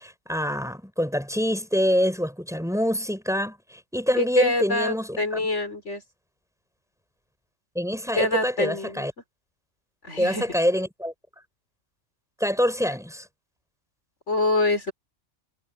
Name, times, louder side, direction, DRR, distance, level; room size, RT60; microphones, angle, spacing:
voice 1, 0.0-5.5 7.7-9.1 10.2-11.1 12.4-13.3, equal, ahead, 6.1 m, -25 dB
voice 2, 4.2-6.0 8.2-9.1 10.0-10.4 14.3-14.9, left 2 dB, 65° left, 4.6 m, -25 dB
omnidirectional pair, 1.3 m